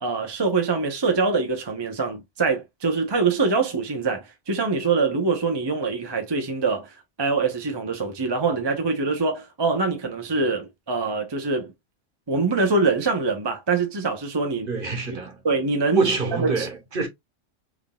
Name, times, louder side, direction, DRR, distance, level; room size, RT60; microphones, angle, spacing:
voice 1, 0.0-11.7 12.3-14.7 15.1-15.2 15.4-16.0 16.3-16.7, right 4 dB, 25° right, 0.7 m, -24 dB
voice 2, 14.7-15.4 15.9-17.1, right 4 dB, 45° right, 1.4 m, -25 dB
3.7 x 3.6 x 2.2 m
omnidirectional pair, 1.2 m